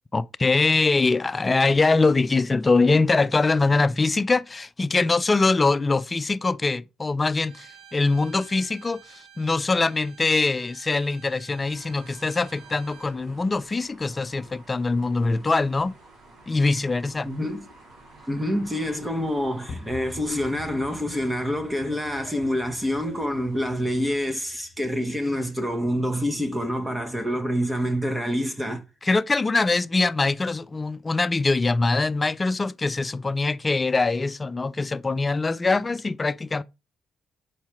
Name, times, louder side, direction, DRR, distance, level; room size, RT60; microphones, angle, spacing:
voice 1, 0.1-15.9 16.5-17.3 29.0-36.6, left 3 dB, 25° left, 0.4 m, -23 dB
Bowed string instrument, 7.4-13.2, right 9 dB, 85° right, 1.1 m, -50 dB
sound 1, 11.6-24.2, right 2 dB, 65° right, 3.6 m, -50 dB
voice 2, 17.2-17.6 18.3-28.8, equal, 15° right, 1.1 m, -27 dB
sound 2, 19.7-28.0, left 4 dB, 45° left, 0.9 m, -47 dB
5.6 x 4.4 x 4.8 m
cardioid pair, 90°, 0 cm